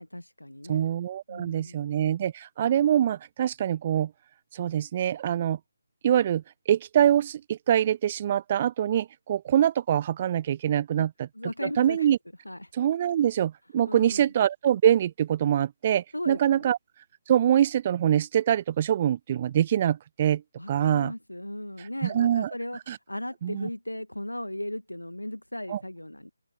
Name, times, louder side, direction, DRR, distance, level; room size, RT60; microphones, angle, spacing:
voice 1, 0.0-0.9 1.3-1.8 11.0-11.1 11.4-12.2 12.5-12.7 13.8-14.3 16.1-16.7 20.6-22.8 23.1-26.3, left 1 dB, 80° left, 1.8 m, -36 dB
voice 2, 0.7-4.1 4.5-5.6 6.0-11.3 11.6-12.2 12.7-16.8 17.3-20.4 20.7-21.1 21.8-22.5 22.9-23.0 23.4-23.7 25.7-25.8, right 10 dB, 30° right, 0.7 m, -24 dB
open air
figure-of-eight pair, 150°, 0 cm